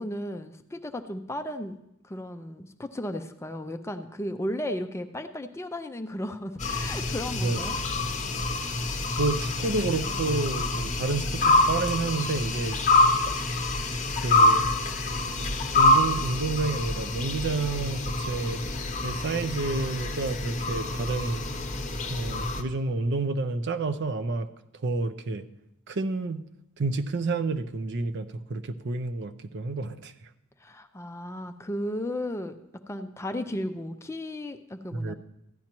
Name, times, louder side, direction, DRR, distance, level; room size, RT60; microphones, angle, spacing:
voice 1, 0.0-1.8 2.0-7.8 30.6-32.6 32.9-35.2, left 1 dB, 10° left, 7 dB, 0.4 m, -34 dB
sound 1, 6.6-22.6, left 2 dB, 35° left, 0.7 m, -26 dB
voice 2, 7.3-7.7 9.2-12.8 13.1-13.3 14.2-14.7 15.8-18.6 19.0-21.4 22.1-24.5 24.8-25.5 25.9-26.4 26.8-30.1 34.9-35.2, right 3 dB, 55° right, 11 dB, 0.5 m, -29 dB
14.5 x 10.5 x 3.0 m, 0.84 s
head